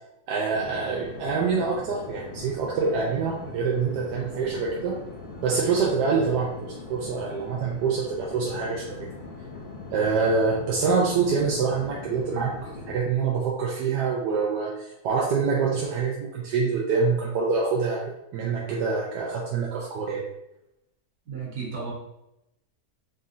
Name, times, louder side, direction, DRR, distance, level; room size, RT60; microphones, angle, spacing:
voice 1, 0.3-5.0 5.4-9.0 9.9-20.2, right 5 dB, 85° right, -2 dB, 1.2 m, -26 dB
sound 1, 0.5-13.0, left 3 dB, 65° left, 0.5 m, -41 dB
voice 2, 21.3-21.9, right 5 dB, 70° right, -5 dB, 1.9 m, -33 dB
4.0 x 3.6 x 2.6 m, 0.85 s
omnidirectional pair, 1.8 m